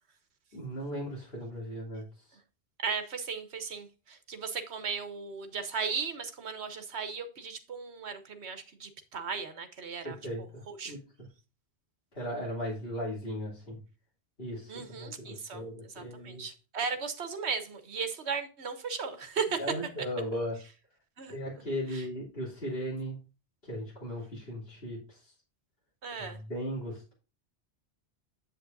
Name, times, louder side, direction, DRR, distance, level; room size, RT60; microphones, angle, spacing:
voice 1, 0.5-2.0 10.0-11.0 12.1-13.8 14.4-16.4 19.6-20.6 21.3-23.2 23.6-25.2 26.2-27.1, equal, 55° left, -6 dB, 3.3 m, -37 dB
voice 2, 2.8-11.0 14.7-19.7 21.2-21.4 21.9-22.1 26.0-26.4, right 5 dB, 75° right, 9 dB, 1.4 m, -36 dB
7.7 x 7.6 x 2.6 m, 0.33 s
omnidirectional pair, 1.1 m